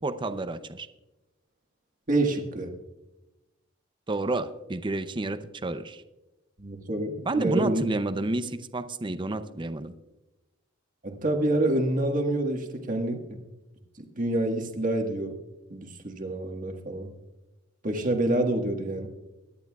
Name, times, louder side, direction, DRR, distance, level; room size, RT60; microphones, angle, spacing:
voice 1, 0.0-0.9 4.1-6.0 7.3-9.9, right 2 dB, 25° right, 11 dB, 0.6 m, -30 dB
voice 2, 2.1-2.7 6.6-7.8 11.0-13.2 14.0-15.3 15.7-17.1 17.8-19.1, right 1 dB, 40° right, 3 dB, 1.6 m, -27 dB
23.0 x 10.5 x 2.4 m, 1.0 s
head